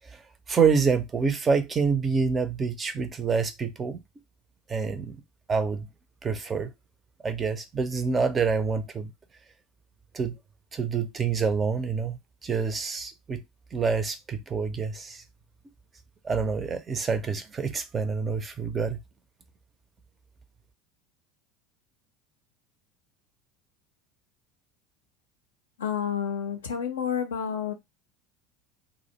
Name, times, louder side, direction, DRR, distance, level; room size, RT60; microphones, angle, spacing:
voice 1, 0.5-4.0 4.7-5.2 5.5-5.9 6.2-6.7 7.2-9.1 10.1-10.4 10.7-13.4 13.7-15.2 16.2-19.0, right 5 dB, 25° right, 0.4 m, -27 dB
voice 2, 25.8-27.7, left 8 dB, 70° left, 0.5 m, -29 dB
2.5 x 2.0 x 2.8 m
figure-of-eight pair, 70°, 0 cm